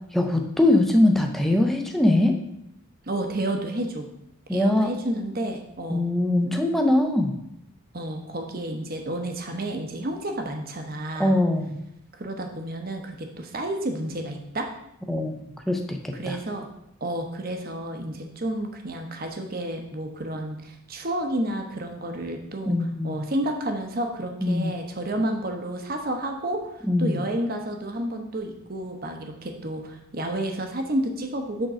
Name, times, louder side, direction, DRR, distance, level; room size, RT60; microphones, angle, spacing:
voice 1, 0.1-2.3 4.5-4.9 5.9-7.3 11.2-11.8 15.1-16.4 22.6-23.2 24.4-24.7 26.9-27.2, left 1 dB, ahead, 3 dB, 0.6 m, -22 dB
voice 2, 3.1-4.1 4.5-6.1 7.9-11.4 12.1-14.7 16.2-16.6 17.0-22.8 23.0-31.7, right 1 dB, 45° right, 4 dB, 0.9 m, -30 dB
6.4 x 3.8 x 6.1 m, 0.80 s
head